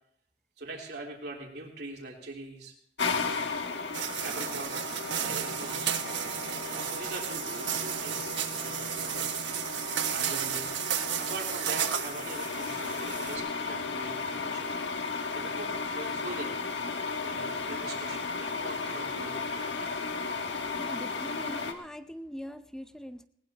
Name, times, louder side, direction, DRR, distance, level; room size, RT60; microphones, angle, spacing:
voice 1, 0.6-2.7 4.2-4.7 5.2-6.3 6.6-9.6 10.1-10.7 11.2-14.7 15.3-16.5 17.2-20.3, right 2 dB, 60° right, -1 dB, 3.4 m, -43 dB
sound 1, 3.0-21.7, left 4 dB, 80° left, 1.5 m, -35 dB
sound 2, 3.9-13.4, right 9 dB, 85° right, 1.2 m, -33 dB
voice 2, 20.8-23.3, equal, 5° left, 9 dB, 0.6 m, -42 dB
19.5 x 19.0 x 2.9 m, 0.68 s
head